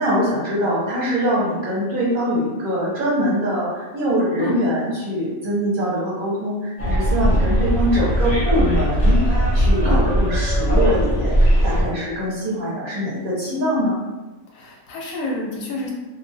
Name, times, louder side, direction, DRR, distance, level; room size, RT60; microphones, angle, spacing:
voice 1, 0.0-14.0, equal, 50° right, -7 dB, 0.7 m, -23 dB
Bus, 6.8-11.8, equal, 40° left, 0.9 m, -18 dB
voice 2, 14.5-15.9, left 2 dB, 85° left, -2 dB, 1.0 m, -28 dB
2.3 x 2.1 x 2.6 m, 1.1 s
omnidirectional pair, 1.4 m